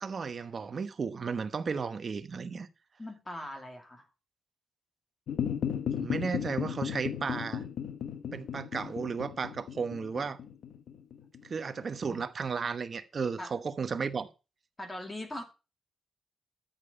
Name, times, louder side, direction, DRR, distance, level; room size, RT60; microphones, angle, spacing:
voice 1, 0.0-2.7 6.0-7.6 8.3-10.4 11.4-14.3, right 5 dB, 35° right, 1.0 m, -34 dB
voice 2, 3.0-4.1 12.1-12.2 13.4-13.5 14.8-15.4, left 1 dB, 15° left, 2.4 m, -40 dB
sound 1, 5.3-11.8, left 8 dB, 70° left, 1.3 m, -35 dB
13.0 x 7.0 x 5.5 m
wide cardioid pair, 170°, 0 cm